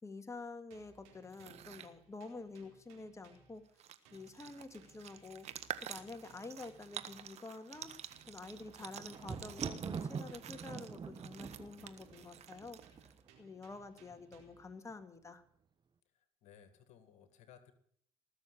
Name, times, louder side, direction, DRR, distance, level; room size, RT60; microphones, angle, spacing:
voice 1, 0.0-3.6 4.1-5.5 5.8-7.9 8.3-12.8 13.4-15.4, left 3 dB, 25° left, 8 dB, 2.0 m, -48 dB
sound 1, 0.7-3.8 4.0-7.3 7.7-11.1 11.4-14.7, right 5 dB, 85° right, 4.3 m, -64 dB
sound 2, 1.2-1.9 3.3-3.4 3.7-13.2, right 10 dB, 60° right, 1.5 m, -49 dB
Thunder, 8.2-13.4 14.1-14.6 14.9-15.0, right 6 dB, 40° right, 1.4 m, -45 dB
voice 2, 16.1-17.7, left 8 dB, 70° left, 10 dB, 1.8 m, -60 dB
20.0 x 7.0 x 9.9 m, 0.65 s
supercardioid pair, 65°, 12 cm